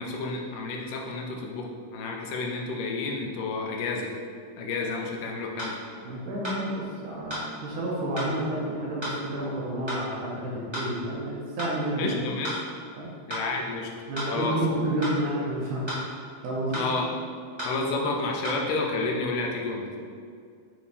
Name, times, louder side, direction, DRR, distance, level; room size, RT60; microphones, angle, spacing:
voice 1, 0.0-4.1 4.6-5.8 12.0-12.6 13.3-13.9 14.3-14.6 16.7-17.1 17.6-19.9, left 3 dB, 80° left, 0 dB, 2.3 m, -30 dB
sound 1, 5.6-5.7 6.4-6.6 7.3-7.5 8.2-8.3 9.0-9.2 9.9-10.0 10.7-10.9 11.6-11.7 12.4-12.6 13.3-13.5 14.1-14.3 15.0-15.2 15.9-16.0 16.7-16.9 17.6-17.7 18.4-18.6, equal, 40° right, 0.3 m, -33 dB
voice 2, 6.0-12.1 13.0-13.1 14.1-15.9 16.4-16.8, right 1 dB, 75° right, -5 dB, 2.5 m, -30 dB
9.1 x 3.3 x 4.2 m, 2.2 s
omnidirectional pair, 3.8 m